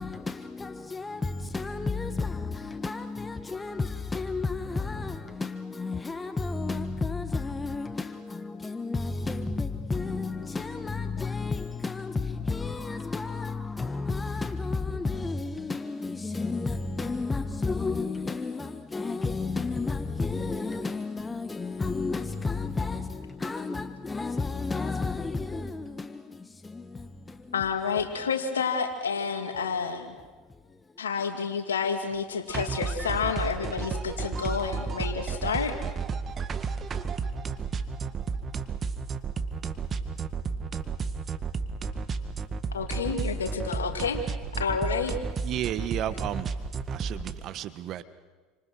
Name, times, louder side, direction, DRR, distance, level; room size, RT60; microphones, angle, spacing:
voice 1, 0.0-27.6 30.5-31.0, left 3 dB, 15° left, 1.4 m, -32 dB
voice 2, 27.5-30.1 31.0-35.8 42.7-44.3 44.6-45.2, left 5 dB, 85° left, 2.7 m, -29 dB
sound 1, 32.5-47.3, right 5 dB, 35° right, 1.8 m, -32 dB
voice 3, 45.4-46.5 46.9-48.0, right 11 dB, 50° right, 1.3 m, -32 dB
29.0 x 26.0 x 6.4 m
hypercardioid pair, 75°, 0 cm